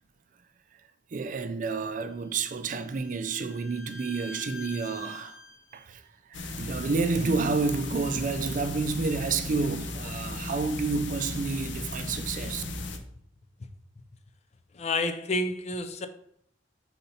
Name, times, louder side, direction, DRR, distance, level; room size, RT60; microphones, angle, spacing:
voice 1, 1.1-5.4 5.7-12.6, right 4 dB, 45° right, 0.4 m, -30 dB
Bowed string instrument, 2.1-5.9, left 3 dB, 15° left, 0.8 m, -46 dB
sound 1, 6.3-13.0, left 2 dB, 80° left, 0.7 m, -36 dB
voice 2, 14.7-16.1, left 2 dB, 35° left, 0.4 m, -29 dB
4.2 x 4.1 x 5.5 m
head